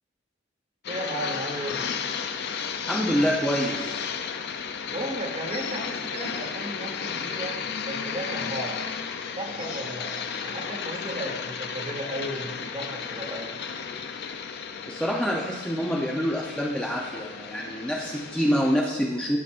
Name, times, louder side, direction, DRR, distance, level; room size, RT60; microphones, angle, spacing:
sound 1, 0.8-18.8, left 6 dB, 60° left, 0.5 m, -34 dB
voice 1, 0.9-1.8 4.9-8.8 9.4-13.5, right 1 dB, 35° right, 1 dB, 1.5 m, -35 dB
voice 2, 2.9-4.1 14.9-19.4, equal, 5° left, -3 dB, 0.7 m, -26 dB
15.0 x 5.8 x 2.5 m, 1.3 s
head